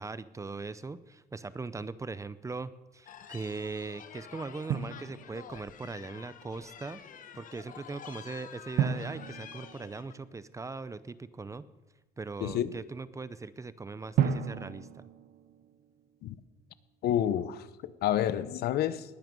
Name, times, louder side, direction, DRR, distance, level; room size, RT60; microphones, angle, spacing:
voice 1, 0.0-7.0 7.3-11.6 12.2-14.9, right 3 dB, 20° right, 15 dB, 0.6 m, -40 dB
sound 1, 3.1-10.1, left 8 dB, 50° left, 1.1 m, -49 dB
Drum, 4.7-5.8 8.8-10.6 14.2-16.2, right 8 dB, 65° right, 1.0 m, -33 dB
voice 2, 17.0-17.6 18.0-19.0, left 11 dB, 70° left, 15 dB, 0.8 m, -28 dB
20.0 x 9.3 x 5.3 m, 1.1 s
cardioid pair, 110°, 17 cm